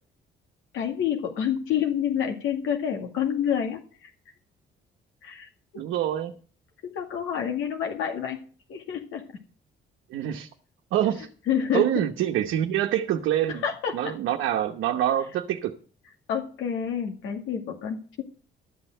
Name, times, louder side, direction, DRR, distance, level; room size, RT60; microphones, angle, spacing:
voice 1, 0.7-4.1 5.2-5.5 5.7-5.8 6.8-8.4 8.7-9.3 11.5-12.0 13.5-14.1 16.3-18.2, left 8 dB, 90° left, 2.1 m, -28 dB
voice 2, 5.8-6.3 10.1-10.5 10.9-11.3 11.7-13.6 13.9-15.8, right 11 dB, 90° right, 1.0 m, -25 dB
13.0 x 6.4 x 7.8 m
cardioid pair, 90°, 20 cm